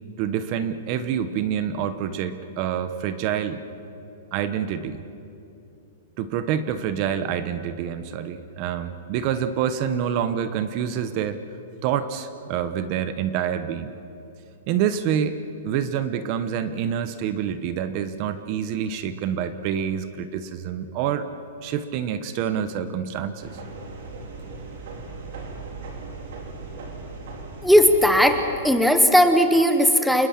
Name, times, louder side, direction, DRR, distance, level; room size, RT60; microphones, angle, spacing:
voice 1, 0.2-3.6 4.3-5.0 6.2-11.4 11.8-13.9 14.7-15.4 15.6-21.3 21.6-23.6, right 9 dB, 30° right, 12 dB, 1.0 m, -27 dB
sound 1, 23.4-28.4, right 3 dB, 55° right, 4.0 m, -38 dB
voice 2, 27.6-30.3, equal, ahead, 7 dB, 0.9 m, -17 dB
28.5 x 20.5 x 7.4 m, 2.7 s
supercardioid pair, 175°, 0 cm